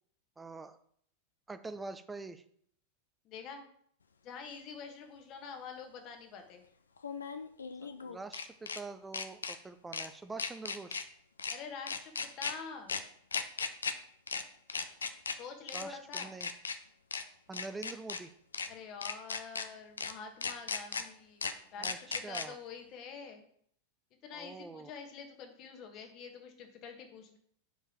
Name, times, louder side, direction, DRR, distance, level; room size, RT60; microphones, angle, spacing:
voice 1, 0.4-0.8 1.5-2.4 7.8-11.1 15.7-16.5 17.5-18.3 21.8-22.6 24.3-24.9, right 3 dB, 10° right, 11 dB, 0.5 m, -45 dB
voice 2, 3.2-3.6 4.2-6.6 11.5-12.9 15.4-16.3 18.7-23.4 24.2-27.4, left 5 dB, 35° left, 5 dB, 1.4 m, -46 dB
sound 1, 4.5-4.6 7.0-8.8 9.1-9.6 9.9-10.1 10.4-11.0 11.4-11.6 11.9-12.5 12.9-13.0 13.3-13.9 14.3-14.4 14.7-15.4 15.7-15.8 16.1-16.8 17.1-17.2 17.5-18.2 18.5-18.7 19.0-19.7 20.0-20.1 20.4-21.0 21.4-21.5 21.8-22.5, left 5 dB, 70° left, 0.5 m, -36 dB
5.3 x 4.9 x 6.0 m, 0.64 s
figure-of-eight pair, 90°, 0 cm